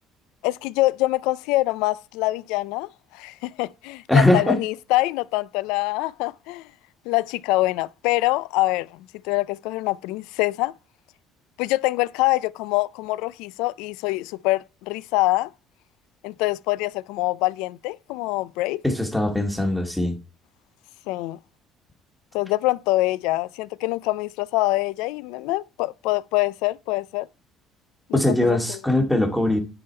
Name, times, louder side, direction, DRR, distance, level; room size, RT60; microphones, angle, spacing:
voice 1, 0.4-6.7 7.1-10.7 11.6-15.5 16.2-18.8 21.1-21.4 22.3-27.3 28.1-28.8, left 19 dB, 90° left, 0.3 m, -25 dB
voice 2, 4.1-4.6 18.8-20.2 28.1-29.6, left 1 dB, ahead, 1.4 m, -20 dB
9.8 x 3.5 x 4.4 m
cardioid pair, 135°, 0 cm